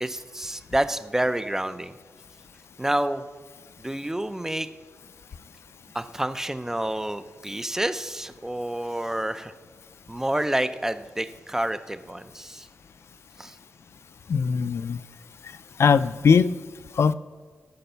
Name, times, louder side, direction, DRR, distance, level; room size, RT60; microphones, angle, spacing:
voice 1, 0.0-1.9 2.8-3.2 3.8-4.7 5.9-9.5 10.1-12.7 13.4-13.6, right 1 dB, 10° right, 11 dB, 0.5 m, -28 dB
voice 2, 14.3-15.0 15.8-16.5 16.9-17.1, left 6 dB, 60° left, 15 dB, 0.4 m, -20 dB
14.5 x 5.3 x 6.8 m, 1.4 s
wide cardioid pair, 95°, 5 cm